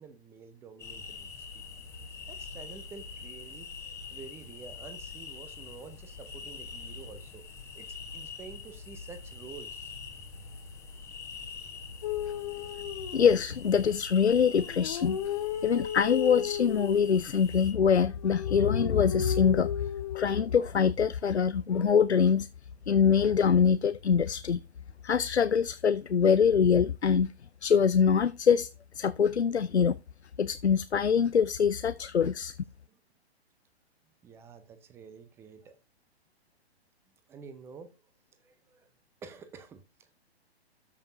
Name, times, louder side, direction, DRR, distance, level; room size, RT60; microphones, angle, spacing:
voice 1, 0.0-1.6 2.3-3.7 4.1-7.4 7.7-9.9 32.9-33.0 34.2-35.8 37.3-38.0 38.4-38.9 39.2-40.1, right 5 dB, 10° right, 0.7 m, -49 dB
sound 1, 0.8-17.7, left 5 dB, 10° left, 1.3 m, -44 dB
sound 2, 12.0-13.7 14.5-17.2 18.0-20.6 21.7-22.3, left 9 dB, 30° left, 0.7 m, -35 dB
voice 2, 13.1-15.2 15.6-19.7 20.1-22.5 22.9-24.6 25.0-27.3 27.6-28.7 28.9-30.0 30.4-32.5, left 7 dB, 85° left, 0.5 m, -24 dB
13.0 x 5.3 x 2.7 m
figure-of-eight pair, 120°, 32 cm